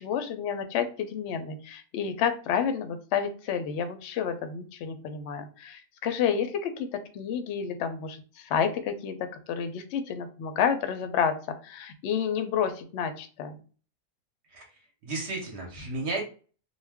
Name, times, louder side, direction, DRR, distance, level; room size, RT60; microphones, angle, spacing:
voice 1, 0.0-6.9 7.1-13.6, left 7 dB, 65° left, 8 dB, 0.7 m, -30 dB
voice 2, 14.5-16.2, right 2 dB, 55° right, 1 dB, 0.9 m, -34 dB
2.3 x 2.1 x 3.4 m, 0.38 s
omnidirectional pair, 1.5 m